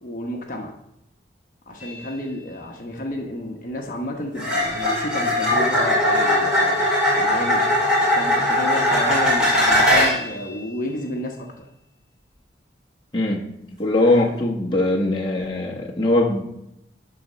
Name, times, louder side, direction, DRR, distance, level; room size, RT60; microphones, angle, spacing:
voice 1, 0.0-0.7 1.7-6.8 7.1-11.7, left 1 dB, 45° left, 1.1 m, -31 dB
sound 1, 1.8-2.0 4.4-10.3 14.0-14.2, left 1 dB, 5° right, 2.7 m, -20 dB
voice 2, 13.1-13.5 13.8-16.4, left 2 dB, 25° left, 1.2 m, -21 dB
12.0 x 4.2 x 6.2 m
head